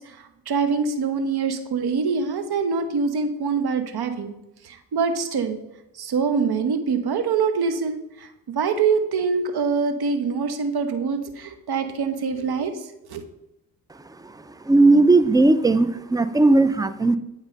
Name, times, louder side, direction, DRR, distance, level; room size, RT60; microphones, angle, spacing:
voice 1, 0.5-4.3 4.6-5.6 6.0-8.0 8.5-12.7 13.1-13.2, right 5 dB, 55° right, 8 dB, 1.2 m, -24 dB
voice 2, 14.6-17.2, right 2 dB, 10° right, 14 dB, 0.4 m, -17 dB
9.0 x 3.7 x 5.2 m, 0.92 s
supercardioid pair, 55°, 46 cm